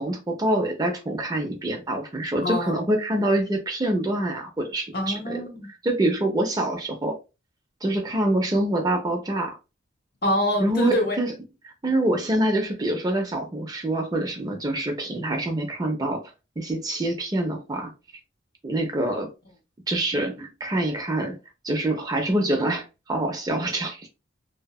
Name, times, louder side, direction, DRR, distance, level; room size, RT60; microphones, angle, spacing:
voice 1, 0.0-5.4 5.8-7.2 7.8-9.6 10.6-11.3 11.6-16.2 16.6-17.9 18.6-19.3 19.9-21.4 21.6-24.1, right 1 dB, 20° right, 0.4 m, -25 dB
voice 2, 2.4-2.7 4.9-5.7 10.2-11.2, left 1 dB, 50° left, 0.9 m, -25 dB
2.7 x 2.2 x 2.2 m
head